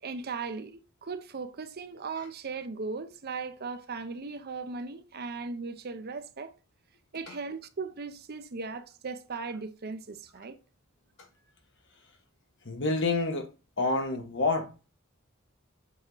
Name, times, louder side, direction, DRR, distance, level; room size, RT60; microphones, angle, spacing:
voice 1, 0.0-6.5 7.1-10.6, right 4 dB, 50° right, 0.7 m, -38 dB
voice 2, 12.6-13.5 13.8-14.9, left 3 dB, 65° left, 1.4 m, -28 dB
7.6 x 3.6 x 4.0 m
head